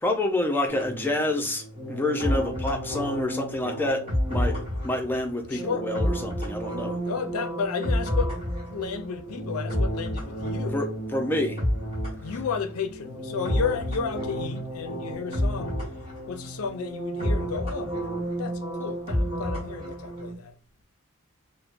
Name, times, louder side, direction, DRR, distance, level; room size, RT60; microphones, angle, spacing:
voice 1, 0.0-4.6 4.8-7.0 10.7-10.9 11.1-11.6, left 1 dB, 10° left, 0.5 m, -28 dB
sound 1, 0.7-20.3, equal, 25° right, 1.5 m, -30 dB
voice 2, 5.5-5.9 7.1-8.4 8.7-10.8 12.2-15.8 16.3-18.0 18.4-20.5, left 6 dB, 85° left, 0.5 m, -33 dB
3.2 x 2.1 x 2.5 m
head